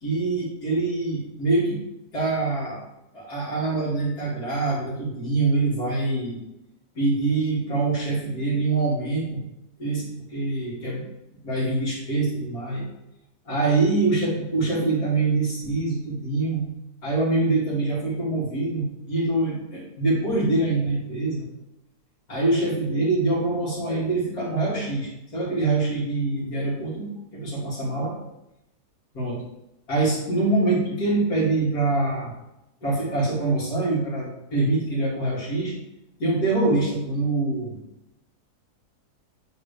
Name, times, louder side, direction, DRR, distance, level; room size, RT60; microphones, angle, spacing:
voice 1, 0.0-1.8 2.1-2.8 3.1-6.4 6.9-9.4 9.8-11.0 11.4-12.9 13.4-16.7 17.0-21.5 22.3-28.1 29.1-29.4 29.9-32.3 32.8-35.7 36.2-37.8, right 2 dB, 65° left, -6 dB, 3.0 m, -24 dB
9.1 x 4.4 x 3.3 m, 0.87 s
omnidirectional pair, 1.7 m